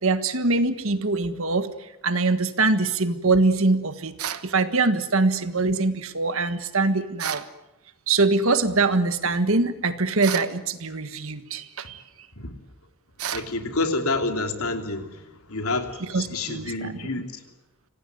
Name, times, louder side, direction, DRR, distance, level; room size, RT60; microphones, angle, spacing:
voice 1, 0.0-1.7 2.0-4.2 4.4-7.4 8.1-12.0 16.1-17.0, right 3 dB, 65° right, 11 dB, 1.6 m, -23 dB
sound 1, 4.2-4.5 7.2-7.5 10.2-10.6 13.2-13.5, right 9 dB, 85° right, 1.2 m, -31 dB
voice 2, 13.3-15.1 15.5-17.3, left 3 dB, 80° left, 6 dB, 3.0 m, -28 dB
26.0 x 18.0 x 9.4 m, 0.98 s
head